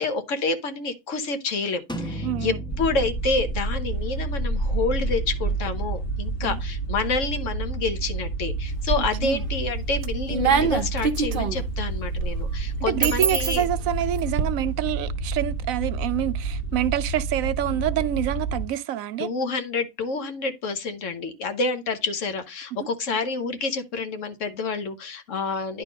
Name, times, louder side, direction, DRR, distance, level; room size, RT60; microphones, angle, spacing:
voice 1, 0.0-13.6 19.2-25.8, left 4 dB, 70° left, 1.3 m, -28 dB
sound 1, 1.9-7.5, right 1 dB, 5° left, 0.5 m, -38 dB
voice 2, 2.2-2.6 6.4-6.6 9.2-9.4 12.9-19.3 22.7-22.8, right 12 dB, 90° right, 1.0 m, -27 dB
sound 2, 2.7-18.7, right 3 dB, 45° left, 1.6 m, -29 dB
sound 3, 8.7-9.4 9.8-14.4, right 5 dB, 50° right, 0.8 m, -26 dB
10.5 x 3.7 x 5.1 m
omnidirectional pair, 1.4 m